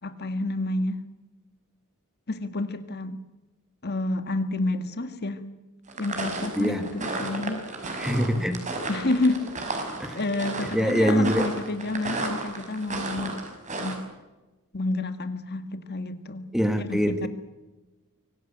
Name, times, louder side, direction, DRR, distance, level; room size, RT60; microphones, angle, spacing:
voice 1, 0.0-1.1 2.3-3.2 3.8-5.5 6.0-8.0 8.9-9.5 9.8-13.4 13.8-14.1 14.7-16.5 16.8-17.3, left 2 dB, 50° left, 10 dB, 1.7 m, -29 dB
sound 1, 5.9-14.0, right 2 dB, 35° right, 5.6 m, -33 dB
voice 2, 8.0-8.6 10.0-10.2 10.7-11.5 16.5-17.3, equal, ahead, 8 dB, 2.1 m, -23 dB
25.0 x 18.0 x 8.8 m, 1.1 s
head